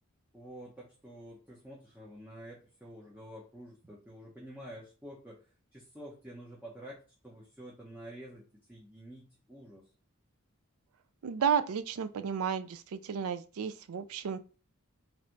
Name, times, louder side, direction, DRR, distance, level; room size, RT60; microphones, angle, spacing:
voice 1, 0.3-5.4 5.7-9.8, right 1 dB, 10° right, -5 dB, 0.7 m, -49 dB
voice 2, 11.2-14.4, right 7 dB, 75° right, 11 dB, 0.4 m, -32 dB
3.2 x 2.6 x 4.5 m, 0.36 s
head